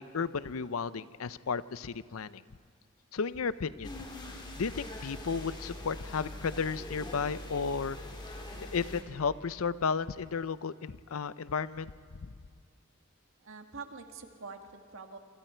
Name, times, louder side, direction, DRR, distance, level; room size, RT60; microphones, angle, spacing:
voice 1, 0.0-2.4 3.1-3.9 4.6-8.0 8.6-11.9, left 5 dB, 75° left, 16 dB, 0.6 m, -33 dB
sound 1, 3.8-9.0, left 1 dB, 25° left, 2.6 m, -43 dB
voice 2, 13.4-15.2, right 4 dB, 70° right, 4 dB, 1.8 m, -45 dB
26.5 x 26.0 x 4.5 m, 2.2 s
head